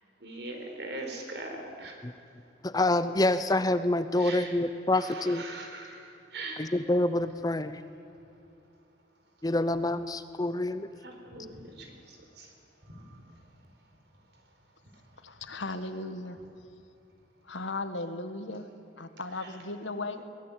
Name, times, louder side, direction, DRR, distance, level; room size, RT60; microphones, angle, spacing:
voice 1, 0.2-2.0 4.2-4.6 4.9-6.7 11.0-12.5 12.9-13.2, right 2 dB, 60° right, 3 dB, 4.3 m, -41 dB
voice 2, 2.6-5.4 6.6-7.8 9.4-10.9, left 2 dB, 20° left, 12 dB, 0.7 m, -27 dB
voice 3, 15.2-16.4 17.4-18.7 19.0-20.2, left 2 dB, 90° left, 9 dB, 1.7 m, -36 dB
22.5 x 20.5 x 8.7 m, 2.7 s
head